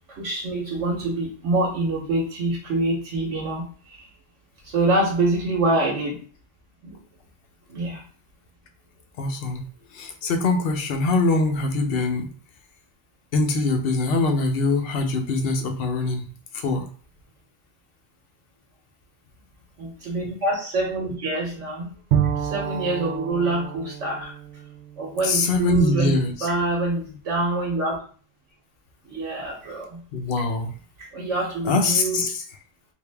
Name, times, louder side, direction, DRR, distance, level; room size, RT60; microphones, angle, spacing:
voice 1, 0.1-4.1 4.6-6.2 6.8-7.0 7.7-8.0 19.8-21.9 22.4-24.3 25.0-28.0 29.0-30.0 31.0-32.2, right 2 dB, 90° right, -3 dB, 1.3 m, -26 dB
voice 2, 9.2-9.6 9.9-12.3 13.3-16.2 16.5-16.9 25.2-26.5 30.1-30.7 31.6-32.3, left 2 dB, 60° left, 5 dB, 0.8 m, -23 dB
Bowed string instrument, 22.1-25.8, right 9 dB, 65° right, 0.8 m, -29 dB
3.5 x 2.6 x 3.3 m, 0.43 s
omnidirectional pair, 1.2 m